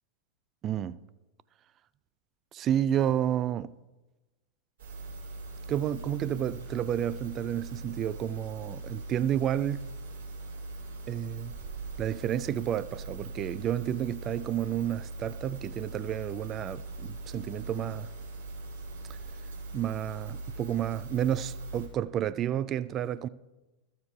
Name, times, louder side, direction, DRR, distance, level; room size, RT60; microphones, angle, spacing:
voice 1, 0.6-1.0 2.5-3.7 5.7-9.9 11.1-11.6 12.0-18.1 19.7-23.3, right 10 dB, 30° right, 0.3 m, -31 dB
sound 1, 4.8-21.9, right 2 dB, 65° right, 3.6 m, -41 dB
14.5 x 6.6 x 3.4 m
figure-of-eight pair, 90°, 0 cm